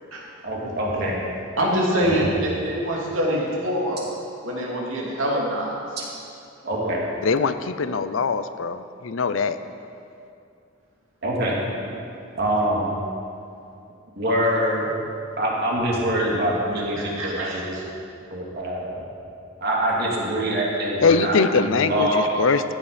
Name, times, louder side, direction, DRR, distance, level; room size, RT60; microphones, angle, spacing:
voice 1, 0.4-1.2 2.0-2.3 6.6-7.0 11.2-11.6 12.3-12.9 14.2-14.9 15.4-17.8 18.3-19.0 19.6-21.4 21.6-22.2, right 1 dB, 55° right, -3 dB, 2.5 m, -24 dB
voice 2, 1.6-4.0 4.4-5.7 17.0-17.8, equal, 90° right, -3 dB, 2.8 m, -25 dB
voice 3, 7.2-9.6 21.0-22.7, left 4 dB, 75° left, 12 dB, 0.6 m, -22 dB
14.5 x 9.7 x 5.1 m, 2.5 s
head